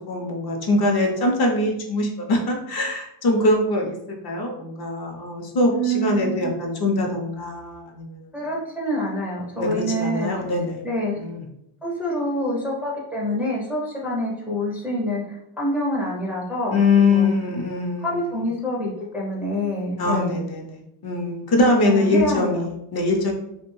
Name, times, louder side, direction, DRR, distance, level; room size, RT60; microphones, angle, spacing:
voice 1, 0.1-4.0 4.2-8.3 9.5-10.8 11.2-11.4 16.7-18.5 20.0-23.3, left 2 dB, 55° left, 1 dB, 0.6 m, -22 dB
voice 2, 5.7-6.5 8.3-10.3 10.8-11.2 11.8-16.8 17.1-17.3 18.0-20.4 21.9-22.7, equal, 5° right, -5 dB, 0.4 m, -26 dB
2.5 x 2.1 x 3.0 m, 0.81 s
cardioid pair, 145°, 46 cm